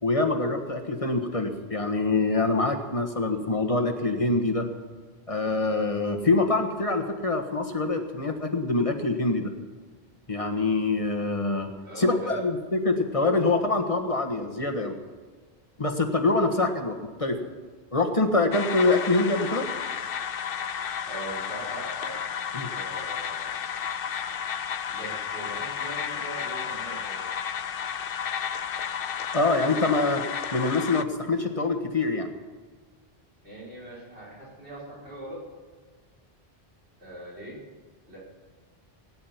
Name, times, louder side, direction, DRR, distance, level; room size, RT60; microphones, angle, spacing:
voice 1, 0.0-4.7 5.3-9.5 10.3-11.7 12.0-14.9 15.8-17.5 17.9-19.7 22.5-22.7 29.3-32.3, left 3 dB, 30° left, 4 dB, 1.6 m, -25 dB
voice 2, 11.8-12.5 16.4-16.7 21.1-22.2 22.7-23.5 24.9-27.3 33.4-35.4 37.0-37.6 38.1-38.2, right 1 dB, 85° right, -5 dB, 6.1 m, -40 dB
sound 1, 18.5-31.0, left 8 dB, 65° left, 0.8 m, -32 dB
18.5 x 10.0 x 5.8 m, 1.5 s
omnidirectional pair, 1.1 m